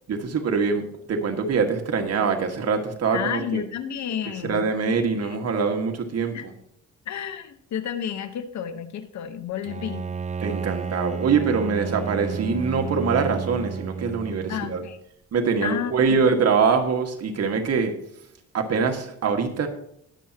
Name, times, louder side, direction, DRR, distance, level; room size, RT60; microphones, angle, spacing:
voice 1, 0.1-3.6 4.4-6.3 10.4-14.8 15.3-17.9 18.5-19.7, right 5 dB, 55° right, 5 dB, 1.8 m, -24 dB
voice 2, 3.1-5.4 6.3-6.5 7.1-10.1 14.5-15.0 15.6-16.2, left 9 dB, 65° left, 9 dB, 1.2 m, -31 dB
Bowed string instrument, 9.7-15.0, right 5 dB, 25° right, 0.5 m, -32 dB
20.5 x 7.2 x 2.9 m, 0.72 s
cardioid pair, 90°, 30 cm